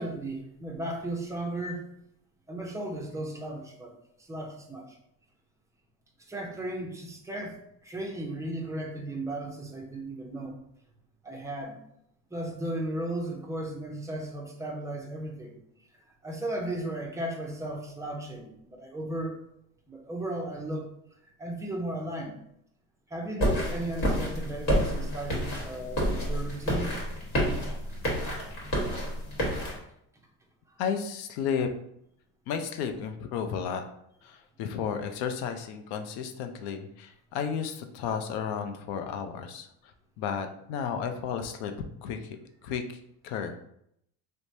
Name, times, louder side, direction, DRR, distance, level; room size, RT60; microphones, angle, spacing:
voice 1, 0.0-1.9 2.5-3.9 4.3-5.0 6.3-10.5 11.2-11.8 12.3-15.5 16.2-19.4 19.9-20.9 21.4-22.4 23.1-27.0 28.1-28.2, right 1 dB, 10° right, 0 dB, 0.4 m, -35 dB
sound 1, 23.4-29.8, equal, 50° left, 1.3 m, -29 dB
voice 2, 30.8-31.7 32.5-33.8 34.2-39.7 40.2-41.7 42.0-42.2 42.6-42.8 43.2-43.7, left 7 dB, 65° left, 7 dB, 0.5 m, -33 dB
3.0 x 2.1 x 2.6 m, 0.74 s
supercardioid pair, 105°, 41 cm